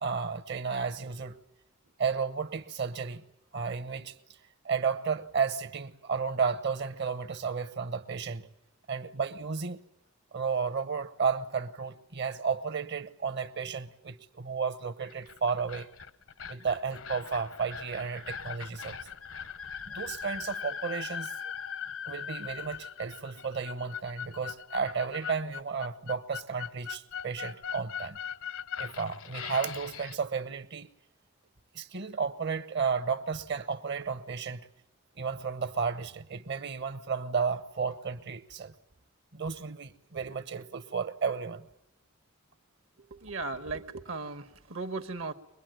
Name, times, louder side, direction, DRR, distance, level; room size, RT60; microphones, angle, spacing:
voice 1, 0.0-1.4 2.0-3.2 3.5-4.1 4.6-8.4 8.9-9.8 10.3-15.9 16.5-19.0 19.9-21.3 22.1-28.2 28.8-30.9 31.7-34.6 35.2-38.7 39.3-41.7, right 5 dB, 55° right, 1.0 m, -33 dB
sound 1, 15.1-30.2, left 7 dB, 75° left, 0.9 m, -40 dB
voice 2, 43.0-45.3, right 3 dB, 70° right, 1.4 m, -37 dB
23.0 x 21.5 x 9.1 m
head